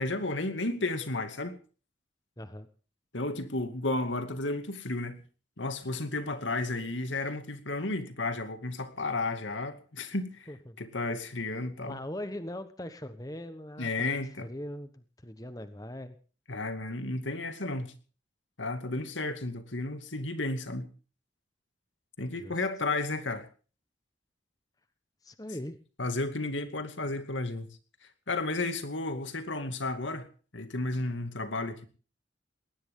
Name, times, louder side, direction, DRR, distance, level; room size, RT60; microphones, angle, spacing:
voice 1, 0.0-1.6 3.1-5.2 5.6-10.5 10.8-12.0 13.8-14.5 16.5-17.9 18.6-20.9 22.2-23.5 26.0-27.7 28.3-30.3 30.5-31.9, left 2 dB, 85° left, 8 dB, 2.4 m, -33 dB
voice 2, 2.4-2.7 10.5-10.8 11.9-16.2 22.4-22.6 25.2-25.8, left 1 dB, 20° left, 10 dB, 1.2 m, -40 dB
20.0 x 19.0 x 3.8 m, 0.39 s
head